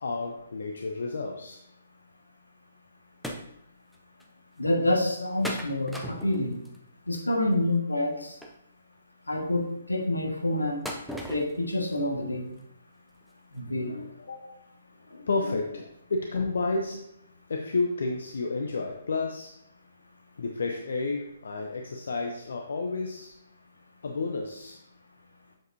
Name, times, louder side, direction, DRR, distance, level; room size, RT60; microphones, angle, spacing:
voice 1, 0.0-1.6 14.3-14.6 15.3-17.1 17.5-19.5 20.4-23.3 24.0-24.8, left 3 dB, 65° left, 3 dB, 0.7 m, -31 dB
sound 1, 3.2-3.5 3.9-4.0 4.2-4.3 5.4-6.8 8.4-8.5 10.8-11.6 11.9-12.0 12.6-12.7 13.2-13.3 13.6-13.7, equal, ahead, 0.8 m, -36 dB
voice 2, 4.6-6.6 7.0-8.4 9.3-10.8 11.3-12.5 13.5-14.1 15.1-15.3, left 1 dB, 85° left, 1 dB, 1.6 m, -28 dB
7.7 x 6.7 x 2.7 m, 0.76 s
figure-of-eight pair, 130°, 0 cm